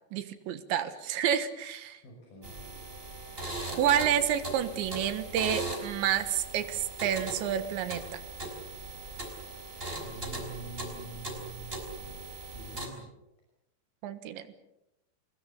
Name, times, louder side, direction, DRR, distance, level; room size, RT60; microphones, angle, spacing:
voice 1, 0.1-2.0 3.8-8.2 14.0-14.6, right 9 dB, 75° right, 10 dB, 3.7 m, -29 dB
voice 2, 2.0-2.6 10.0-12.2 12.5-13.1, right 3 dB, 50° left, 0 dB, 7.5 m, -46 dB
sound 1, 2.4-12.9, right 2 dB, 10° right, 4.8 m, -39 dB
28.5 x 20.5 x 7.1 m, 0.90 s
omnidirectional pair, 5.3 m